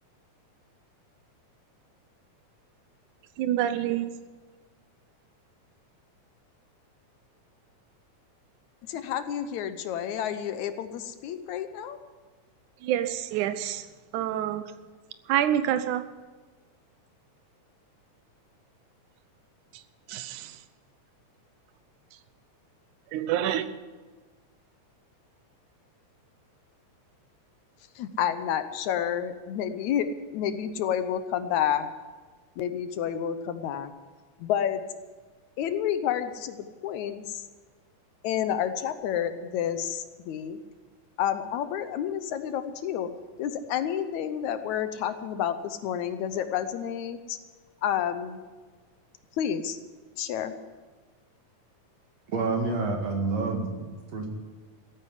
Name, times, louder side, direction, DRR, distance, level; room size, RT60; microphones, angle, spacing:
voice 1, 3.4-4.1 12.8-13.9 14.1-14.6 15.3-16.0 19.7-19.8 20.1-20.6 23.1-23.7, right 11 dB, 75° right, 11 dB, 2.2 m, -27 dB
voice 2, 8.9-12.0 28.0-31.9 32.6-33.9 34.4-34.8 35.6-37.5 38.2-40.6 41.2-43.1 43.4-47.4 47.8-48.4 49.4-49.8 50.2-50.5, left 9 dB, 75° left, 10 dB, 2.0 m, -30 dB
voice 3, 52.3-54.3, right 3 dB, 55° right, 2 dB, 3.1 m, -28 dB
15.0 x 8.9 x 9.7 m, 1.4 s
omnidirectional pair, 3.7 m